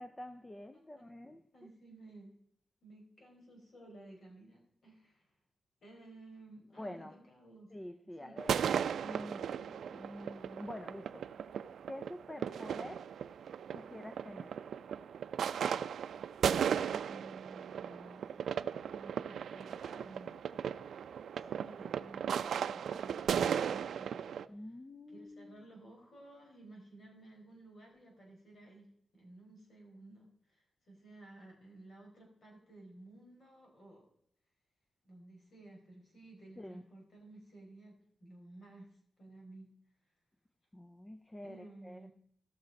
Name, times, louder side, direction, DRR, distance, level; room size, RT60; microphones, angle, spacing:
voice 1, 0.0-1.4 6.8-7.2 7.7-8.6 9.0-11.5 11.9-13.1 13.7-14.6 24.5-25.6 36.6-36.8 40.7-42.1, left 1 dB, 10° left, 0.5 m, -47 dB
voice 2, 0.7-1.0 1.5-2.3 2.8-5.4 5.8-7.7 8.2-8.4 16.8-20.4 21.4-24.7 25.1-28.9 29.1-34.0 35.0-39.7 41.4-42.1, right 2 dB, 45° left, 4.1 m, -55 dB
sound 1, 8.4-24.4, right 8 dB, 85° right, 0.4 m, -36 dB
16.5 x 6.2 x 5.2 m
wide cardioid pair, 170°, 0 cm